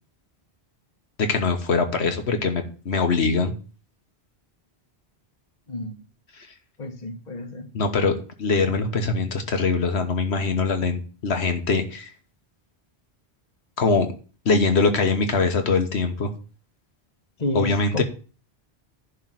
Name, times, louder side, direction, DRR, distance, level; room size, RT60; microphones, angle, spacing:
voice 1, 1.2-3.5 7.7-8.1 8.4-12.1 13.8-14.1 14.4-16.3 17.5-18.0, left 4 dB, 80° left, 1.4 m, -22 dB
voice 2, 5.7-6.0 6.8-7.7 17.4-18.0, left 2 dB, 40° left, 1.4 m, -30 dB
11.0 x 3.7 x 7.5 m
omnidirectional pair, 1.1 m